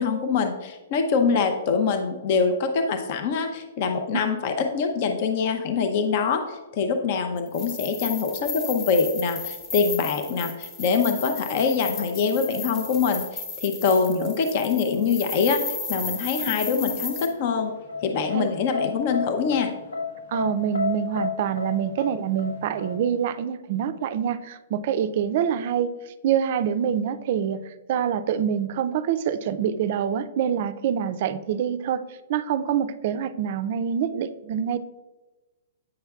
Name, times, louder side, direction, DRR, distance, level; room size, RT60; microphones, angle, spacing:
voice 1, 0.0-17.7 18.0-19.7, left 5 dB, 40° left, 6 dB, 0.5 m, -24 dB
sound 1, 7.5-17.3, left 4 dB, 20° left, 1.0 m, -34 dB
sound 2, 17.1-23.0, left 4 dB, 75° left, 1.1 m, -31 dB
voice 2, 20.3-25.9 26.2-32.0 32.3-34.8, right 8 dB, 45° right, 12 dB, 0.4 m, -26 dB
8.5 x 5.7 x 2.3 m, 1.2 s
hypercardioid pair, 165°, 0 cm